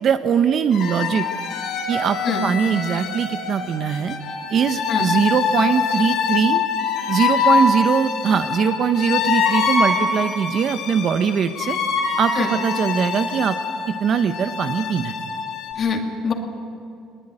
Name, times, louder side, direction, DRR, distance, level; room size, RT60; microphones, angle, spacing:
voice 1, 0.0-1.2 1.9-4.2 4.5-6.6 7.1-11.8 12.2-13.6 14.0-15.1, right 7 dB, 40° right, 9 dB, 0.8 m, -21 dB
sound 1, 0.7-15.7, left 5 dB, 55° left, 5.4 m, -24 dB
voice 2, 15.8-16.3, left 5 dB, 35° left, 3 dB, 2.7 m, -24 dB
20.5 x 20.5 x 9.9 m, 2.5 s
cardioid pair, 155°, 0 cm